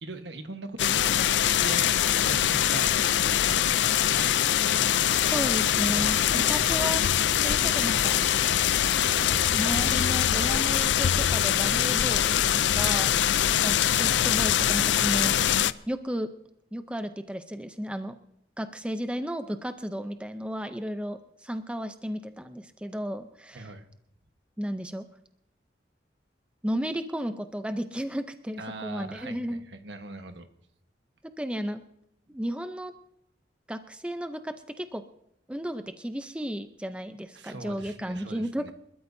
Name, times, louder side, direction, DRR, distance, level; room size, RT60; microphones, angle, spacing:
voice 1, 0.0-3.7 4.1-4.4 13.0-13.2 23.5-23.9 28.6-30.5 37.3-38.7, right 2 dB, 80° right, 7 dB, 1.3 m, -41 dB
sound 1, 0.8-15.7, left 10 dB, 80° left, 0.4 m, -23 dB
voice 2, 5.2-7.2 7.4-8.2 9.4-12.4 12.7-13.1 13.6-15.4 15.9-16.3 16.7-18.1 18.6-23.7 24.6-25.0 26.6-29.6 31.4-31.8 32.3-32.9 33.7-35.0 35.5-38.7, equal, 5° right, 8 dB, 0.5 m, -33 dB
sound 2, 5.6-10.6, left 1 dB, 50° left, 1.6 m, -40 dB
29.0 x 13.5 x 2.7 m, 0.75 s
head